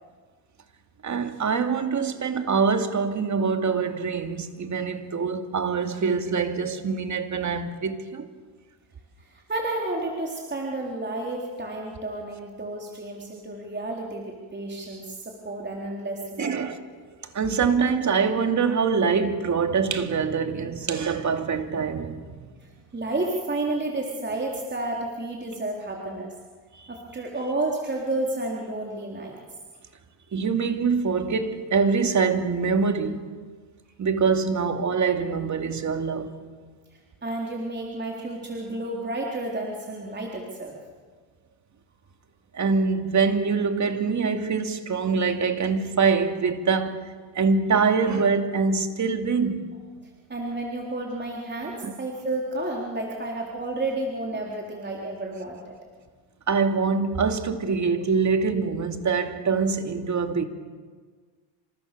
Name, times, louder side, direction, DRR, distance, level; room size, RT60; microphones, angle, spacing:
voice 1, 1.0-8.3 16.4-16.8 17.3-22.4 26.7-26.9 30.3-33.3 34.0-36.4 42.5-47.0 47.3-49.7 51.8-51.9 56.5-60.5, right 5 dB, 40° right, 2.8 m, -24 dB
voice 2, 9.2-16.6 22.6-26.3 26.9-29.4 37.2-40.8 50.3-55.8, right 2 dB, 25° right, 3.9 m, -31 dB
28.5 x 27.0 x 7.0 m
cardioid pair, 100°, 45 cm